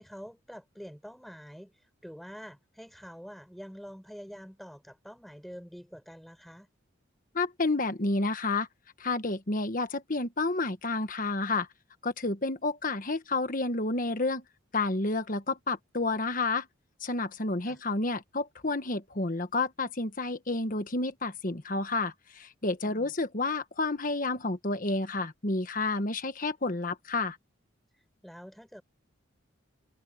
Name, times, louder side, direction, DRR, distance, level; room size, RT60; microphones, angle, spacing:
voice 1, 0.0-6.7 17.6-17.8 22.8-23.1 28.2-28.8, equal, ahead, 6.3 m, -46 dB
voice 2, 7.3-8.7 9.0-11.7 12.0-14.4 14.7-16.7 17.0-27.4, left 3 dB, 40° left, 1.4 m, -30 dB
head